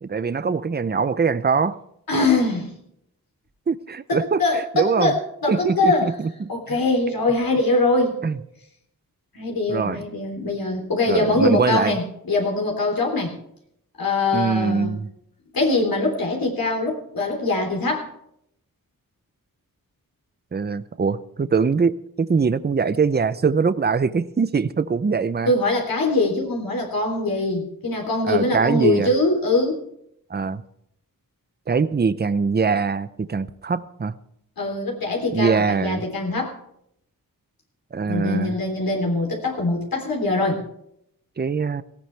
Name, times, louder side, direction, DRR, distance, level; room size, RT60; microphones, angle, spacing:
voice 1, 0.0-1.8 3.7-4.4 4.7-5.2 5.5-6.8 8.2-8.4 9.7-10.0 11.1-12.0 14.3-15.1 20.5-25.5 28.3-29.1 30.3-30.6 31.7-34.1 35.3-36.0 37.9-38.5 41.4-41.8, right 5 dB, 30° right, 14 dB, 0.6 m, -22 dB
voice 2, 2.1-2.7 4.1-6.1 6.5-8.2 9.3-13.4 14.0-15.0 15.5-18.1 25.4-29.8 34.6-36.6 38.1-40.6, left 2 dB, 75° left, 1 dB, 3.5 m, -22 dB
18.5 x 16.0 x 3.4 m, 0.73 s
wide cardioid pair, 120°, 35 cm